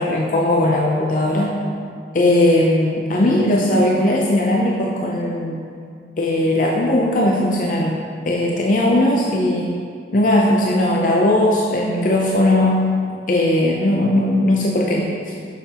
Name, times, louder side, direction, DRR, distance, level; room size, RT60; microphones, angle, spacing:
voice 1, 0.0-1.6 2.1-5.6 6.2-8.0 8.3-9.8 10.1-12.9 13.3-15.3, left 1 dB, 45° left, -1 dB, 0.5 m, -18 dB
7.0 x 6.6 x 2.9 m, 2.3 s
head